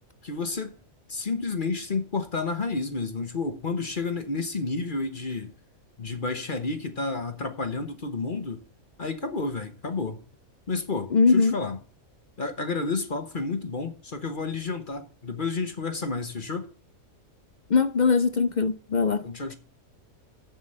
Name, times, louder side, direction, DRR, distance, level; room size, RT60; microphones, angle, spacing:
voice 1, 0.2-0.7 1.1-5.5 6.0-8.6 9.0-10.2 10.7-11.8 12.4-16.7 19.2-19.5, left 3 dB, 40° left, 1.2 m, -30 dB
voice 2, 11.1-11.6 17.7-19.2, left 5 dB, 65° left, 0.4 m, -21 dB
7.7 x 7.1 x 7.9 m
omnidirectional pair, 1.5 m